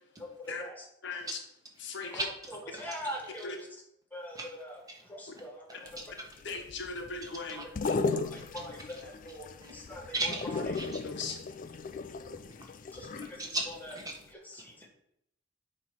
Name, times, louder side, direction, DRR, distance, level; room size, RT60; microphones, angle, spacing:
voice 1, 0.2-0.8 2.0-2.2 2.8-3.7 4.1-4.7 5.1-5.9 8.1-9.5 9.7-10.0 12.9-13.4, equal, 10° left, 0 dB, 1.5 m, -42 dB
voice 2, 1.8-2.2 3.4-3.6 6.4-7.6 11.0-11.4, left 4 dB, 65° left, 4 dB, 1.0 m, -38 dB
voice 3, 2.5-3.4 4.3-4.5 4.9-5.0 5.3-5.4 5.8-6.3 7.2-8.0 8.4-8.5 8.9-9.0 9.6-9.7 10.1-11.0 12.6-12.7 13.2-14.2 14.8-14.9, right 2 dB, 20° right, 0 dB, 1.3 m, -39 dB
sound 1, 5.9-13.8 14.1-14.2, left 4 dB, 45° left, 0.4 m, -36 dB
8.4 x 3.2 x 5.8 m, 0.76 s
head